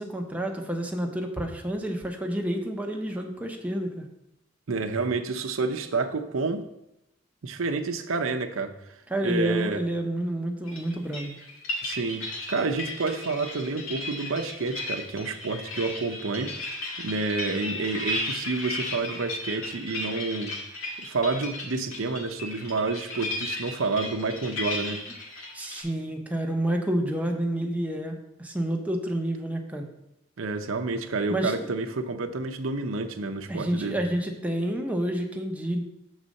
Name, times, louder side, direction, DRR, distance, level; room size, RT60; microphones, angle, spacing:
voice 1, 0.0-4.1 9.1-11.3 25.5-29.9 31.3-31.7 33.5-35.8, right 1 dB, 5° right, 2 dB, 0.7 m, -29 dB
voice 2, 4.7-6.6 7.4-8.8 9.2-9.8 11.8-16.5 17.0-20.5 21.0-25.0 30.4-34.0, right 3 dB, 85° right, 7 dB, 0.7 m, -29 dB
sound 1, 10.7-25.8, left 2 dB, 85° left, 1.7 m, -35 dB
6.4 x 4.1 x 6.4 m, 0.87 s
head